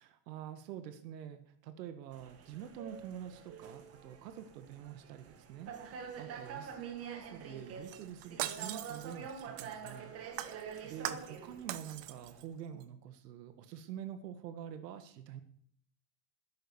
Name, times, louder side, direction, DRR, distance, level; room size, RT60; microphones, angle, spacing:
voice 1, 0.0-15.4, right 9 dB, 85° right, 10 dB, 1.8 m, -47 dB
sound 1, 2.1-12.4, right 6 dB, 30° right, 1.9 m, -47 dB
Shatter, 7.9-10.0 10.4-11.4 11.7-12.4 12.8-12.9, right 14 dB, 50° right, 1.1 m, -41 dB
13.0 x 11.0 x 7.1 m, 0.64 s
supercardioid pair, 155°, 47 cm